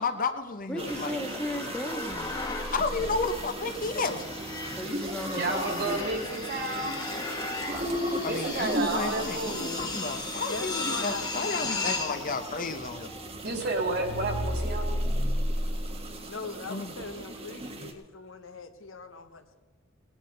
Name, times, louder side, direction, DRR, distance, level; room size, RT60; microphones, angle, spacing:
voice 1, 0.0-1.2 2.7-4.3 8.2-13.1 16.7-16.9, left 4 dB, 45° left, 8 dB, 0.9 m, -32 dB
voice 2, 0.7-2.4 4.7-6.3, left 1 dB, 5° left, 3 dB, 1.5 m, -36 dB
sound 1, 0.8-17.9, right 1 dB, 30° right, 1.2 m, -38 dB
sound 2, 0.9-16.3, left 2 dB, 20° left, 1.6 m, -35 dB
voice 3, 5.3-7.0 8.2-9.9 13.4-15.0, right 2 dB, 55° right, 4 dB, 2.4 m, -31 dB
voice 4, 10.5-12.3 16.2-19.6, left 4 dB, 75° left, 8 dB, 1.1 m, -41 dB
18.5 x 9.8 x 5.3 m, 1.3 s
head